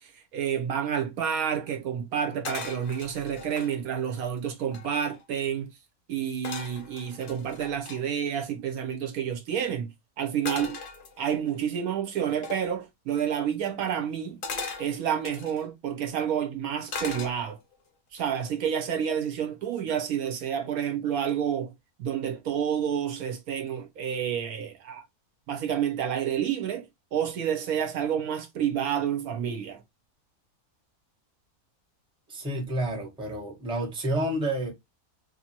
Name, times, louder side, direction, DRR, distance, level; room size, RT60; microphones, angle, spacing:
voice 1, 0.0-5.7 6.1-10.8 11.2-14.4 14.8-17.6 18.1-21.7 22.0-25.0 25.5-29.8, right 8 dB, 75° right, 1.1 m, -29 dB
sound 1, 2.4-3.7 4.3-4.4 4.6-5.2 6.4-8.0 10.5-11.5 12.4-12.7 14.4-15.6 16.9-17.7 18.2-18.5, left 4 dB, 55° left, 0.6 m, -38 dB
voice 2, 32.3-34.7, right 1 dB, 5° right, 0.6 m, -29 dB
2.7 x 2.6 x 2.7 m
omnidirectional pair, 1.6 m